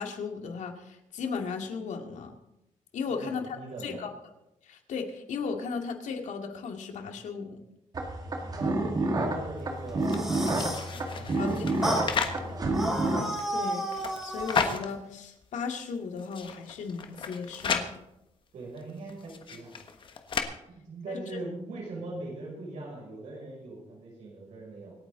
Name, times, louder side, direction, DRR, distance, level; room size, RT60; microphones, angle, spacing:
voice 1, 0.0-2.4 2.9-3.4 3.8-4.1 4.6-7.6 11.4-11.9 12.6-12.7 13.5-13.9 14.2-18.0 21.1-21.4, left 5 dB, 75° left, 4 dB, 2.3 m, -36 dB
voice 2, 3.1-4.0 8.5-10.2 10.6-12.6 18.5-19.8 20.7-24.9, right 2 dB, 75° right, -4 dB, 6.4 m, -41 dB
sound 1, 7.9-13.2, right 2 dB, 30° right, 1.9 m, -29 dB
sound 2, 9.9-10.9 11.8-12.1 12.7-14.7, right 1 dB, 5° right, 3.9 m, -32 dB
sound 3, 10.0-12.4 13.1-14.9 15.4-15.5 15.7-15.8 16.2-17.9 18.8-20.4, left 6 dB, 40° left, 1.3 m, -34 dB
26.0 x 9.5 x 3.9 m, 0.87 s
wide cardioid pair, 180°, 13 cm